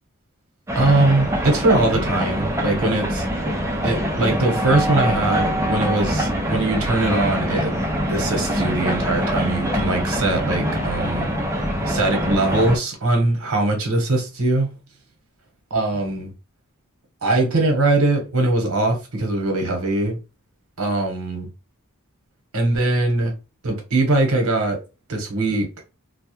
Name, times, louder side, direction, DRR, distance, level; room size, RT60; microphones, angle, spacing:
sound 1, 0.7-12.8, equal, 10° right, 0.3 m, -24 dB
voice 1, 0.7-3.3 3.8-7.7 8.1-11.3 11.9-14.7 15.7-16.3 17.2-20.2 20.8-21.5 22.5-23.3 23.6-24.8 25.1-25.7, right 2 dB, 75° right, 0.9 m, -21 dB
2.2 x 2.1 x 2.8 m
head